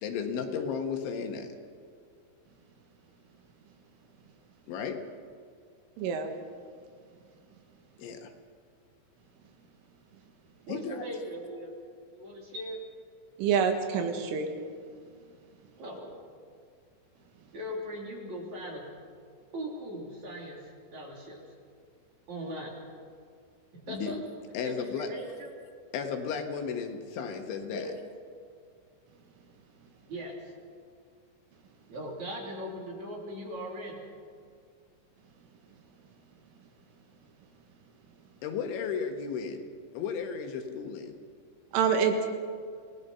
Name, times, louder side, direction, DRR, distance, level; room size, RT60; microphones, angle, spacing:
voice 1, 0.0-1.5 4.7-5.0 8.0-8.3 10.7-11.1 23.9-24.1 24.5-25.1 25.9-27.9 38.4-39.6 39.9-41.2, left 6 dB, 75° left, 5 dB, 3.7 m, -34 dB
voice 2, 6.0-6.3 13.4-14.5 41.7-42.3, right 6 dB, 80° right, 5 dB, 4.2 m, -26 dB
voice 3, 10.7-11.7 12.1-12.8 15.8-16.1 17.5-18.9 19.5-21.4 22.3-22.7 23.9-24.2 24.6-25.5 27.7-28.0 30.1-30.5 31.9-34.0, equal, 40° right, -1 dB, 4.0 m, -39 dB
28.5 x 19.0 x 5.6 m, 2.2 s
omnidirectional pair, 5.7 m